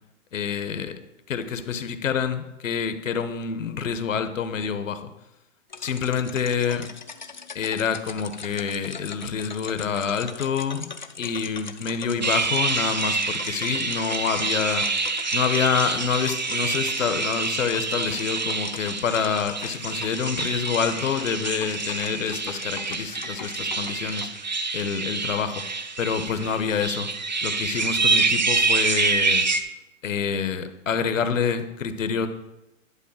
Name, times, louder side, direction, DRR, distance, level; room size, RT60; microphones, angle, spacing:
voice 1, 0.3-0.9 1.3-5.0 5.8-6.9 7.5-10.9 11.2-14.9 15.3-24.3 24.7-25.6 26.0-27.1 27.4-29.5 30.0-32.3, left 6 dB, 70° left, 9 dB, 1.2 m, -27 dB
sound 1, 5.7-24.3, left 5 dB, 35° left, 0.4 m, -39 dB
sound 2, 12.2-29.6, right 4 dB, 35° right, 0.4 m, -27 dB
10.5 x 4.7 x 7.2 m, 0.93 s
hypercardioid pair, 175°, 40 cm